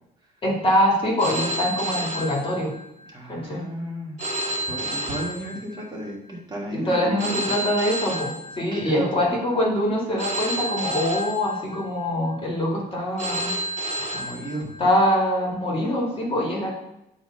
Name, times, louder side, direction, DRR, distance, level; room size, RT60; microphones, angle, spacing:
voice 1, 0.4-2.7 3.3-3.6 6.7-13.5 14.8-16.7, left 1 dB, 30° left, -2 dB, 2.1 m, -24 dB
Telephone, 1.2-3.1 4.2-6.1 7.2-9.1 10.2-12.0 13.2-15.0, right 1 dB, 45° right, 1.8 m, -30 dB
voice 2, 3.1-4.2 4.5-7.4 8.7-9.2 14.1-14.7, right 1 dB, 25° right, -3 dB, 1.9 m, -33 dB
7.9 x 3.3 x 5.5 m, 0.87 s
cardioid pair, 110°, 17 cm